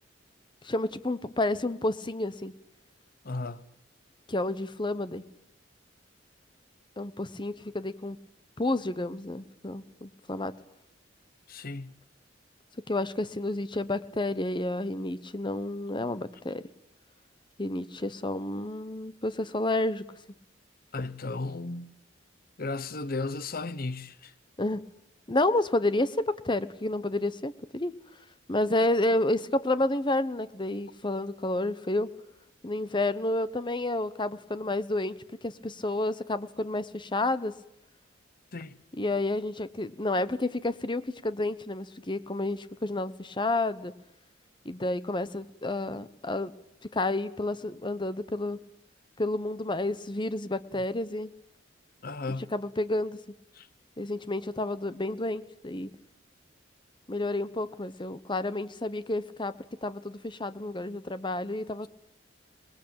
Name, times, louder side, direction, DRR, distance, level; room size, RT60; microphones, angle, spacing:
voice 1, 0.6-2.5 4.3-5.2 7.0-8.2 8.6-10.5 12.9-16.7 17.6-20.0 24.6-24.9 25.3-27.9 28.5-32.1 32.6-37.5 39.0-43.9 44.6-46.5 46.8-48.6 49.2-51.3 52.5-53.2 54.0-55.9 57.1-59.5 59.8-61.9, left 2 dB, 25° left, 0.9 m, -30 dB
voice 2, 3.2-3.7 11.5-11.9 20.9-22.0 22.6-24.3 38.5-38.8 50.7-50.8 52.0-52.5 53.5-53.7, left 3 dB, 50° left, 0.9 m, -35 dB
25.5 x 20.0 x 8.7 m
head